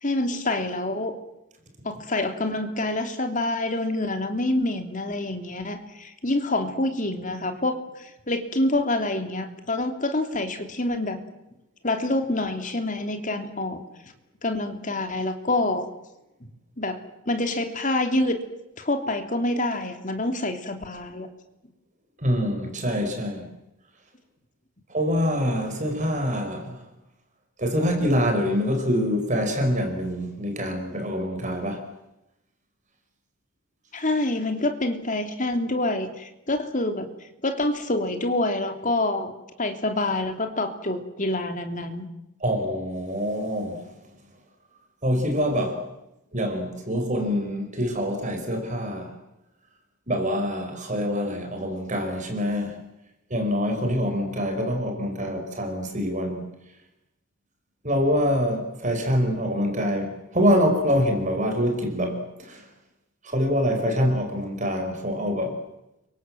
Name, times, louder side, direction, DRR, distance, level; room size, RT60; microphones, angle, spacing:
voice 1, 0.0-1.1 1.8-11.2 11.8-13.8 14.4-15.9 16.8-17.0 17.3-18.4 18.8-21.3 33.9-37.1 37.4-39.3 39.6-42.1, left 2 dB, 35° left, 3.0 m, -26 dB
voice 2, 22.2-23.5 24.9-26.8 27.6-31.8 42.4-43.9 45.0-45.8 46.3-49.1 50.1-52.8 53.3-56.5 57.8-62.6 63.2-65.6, equal, 35° right, 5.2 m, -25 dB
30.0 x 24.5 x 7.7 m
head